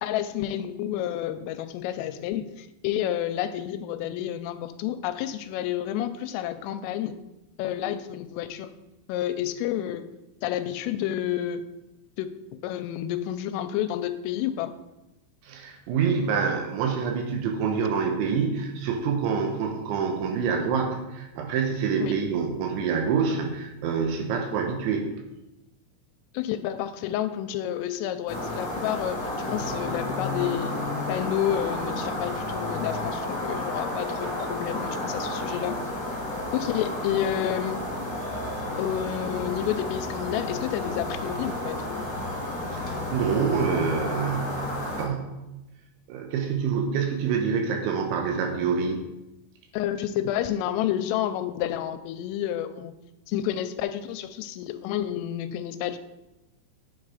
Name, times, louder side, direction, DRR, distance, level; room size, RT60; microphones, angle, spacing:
voice 1, 0.0-7.2 7.6-8.7 9.1-10.1 10.4-11.7 12.2-12.3 12.6-14.7 22.0-22.2 26.3-35.8 36.5-37.8 38.8-42.0 49.7-53.0 53.3-56.0, left 11 dB, 85° left, 11 dB, 3.0 m, -30 dB
voice 2, 15.4-25.1 42.7-44.7 45.0-45.2 46.1-49.0, right 6 dB, 75° right, 3 dB, 3.0 m, -26 dB
sound 1, 28.3-45.0, left 1 dB, 35° left, 1.9 m, -31 dB
8.7 x 7.8 x 4.9 m, 0.99 s
omnidirectional pair, 5.9 m